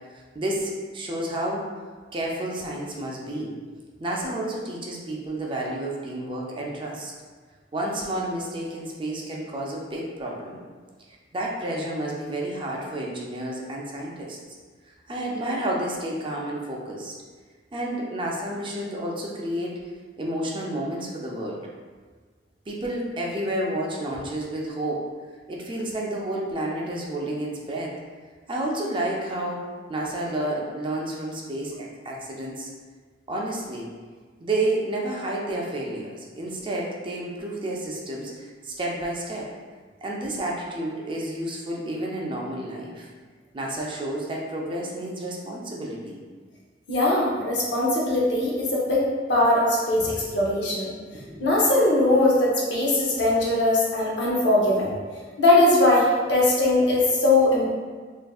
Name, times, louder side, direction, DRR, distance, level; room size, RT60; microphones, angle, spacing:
voice 1, 0.3-1.6 2.1-3.5 4.0-7.1 7.7-10.6 11.3-14.4 15.1-17.1 17.7-19.8 20.2-21.6 22.7-25.0 25.5-27.9 28.5-32.7 33.3-33.9 34.4-39.5 40.0-43.1 43.5-46.2 51.1-51.4, right 1 dB, 30° right, -2 dB, 0.4 m, -30 dB
voice 2, 46.9-50.9 51.4-54.9 55.4-57.7, left 2 dB, 80° left, -4 dB, 0.8 m, -20 dB
3.5 x 2.5 x 2.3 m, 1.5 s
head